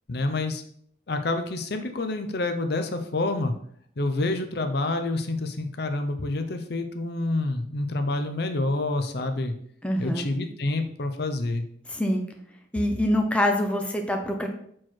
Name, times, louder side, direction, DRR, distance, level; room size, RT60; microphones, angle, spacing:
voice 1, 0.1-0.6 1.1-3.5 4.0-9.5 10.0-11.6, left 2 dB, 55° left, 7 dB, 0.6 m, -28 dB
voice 2, 9.8-10.3 11.9-12.3 12.7-14.5, left 1 dB, 5° left, 3 dB, 0.6 m, -25 dB
6.1 x 4.6 x 4.5 m, 0.65 s
head